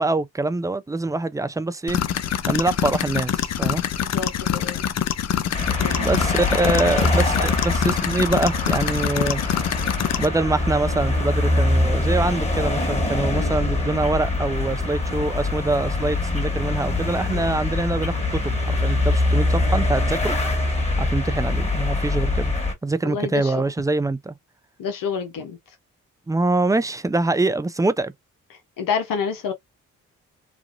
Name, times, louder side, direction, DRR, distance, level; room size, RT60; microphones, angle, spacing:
voice 1, 0.0-2.0 2.5-3.8 6.0-9.4 10.2-20.4 21.0-22.5 22.8-24.4 26.3-28.1, right 2 dB, 10° right, 0.4 m, -24 dB
sound 1, 1.9-10.3, left 9 dB, 50° left, 0.5 m, -25 dB
voice 2, 4.0-4.8 5.8-6.1 6.6-6.9 17.3-17.5 23.0-23.5 24.8-25.6 28.8-29.5, left 6 dB, 70° left, 0.8 m, -28 dB
sound 2, 5.5-22.7, left 2 dB, 20° left, 1.7 m, -23 dB
3.0 x 2.4 x 2.5 m
supercardioid pair, 45°, 34 cm